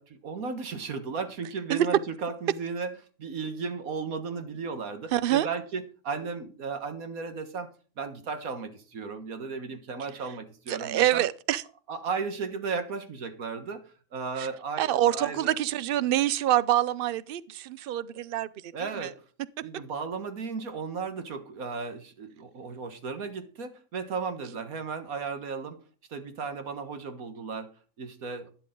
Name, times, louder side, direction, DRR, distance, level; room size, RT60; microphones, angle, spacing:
voice 1, 0.0-11.3 11.9-15.6 18.7-19.2 19.6-25.8 26.1-28.5, right 5 dB, 85° right, 1.8 m, -35 dB
voice 2, 5.1-5.5 10.7-11.6 14.4-14.5 14.8-18.5 19.0-19.1, right 12 dB, 60° right, 0.6 m, -26 dB
12.0 x 10.0 x 3.7 m
omnidirectional pair, 1.4 m